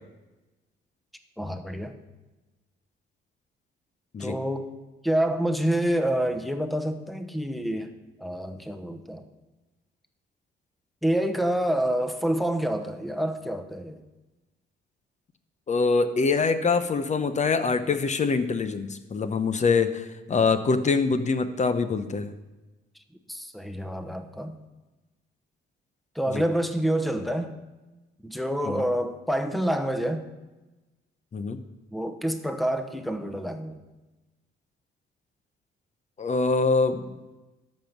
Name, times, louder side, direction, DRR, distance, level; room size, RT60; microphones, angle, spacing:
voice 1, 1.4-1.9 4.2-4.7 5.0-7.9 8.2-9.2 11.0-14.0 23.3-24.6 26.1-27.6 28.2-30.3 31.9-33.8, right 1 dB, ahead, 8 dB, 0.9 m, -27 dB
voice 2, 15.7-22.3 26.3-26.4 28.6-28.8 31.3-31.6 36.2-37.0, left 4 dB, 35° left, 10 dB, 0.8 m, -24 dB
13.0 x 5.4 x 5.9 m, 1.1 s
cardioid pair, 90°, 20 cm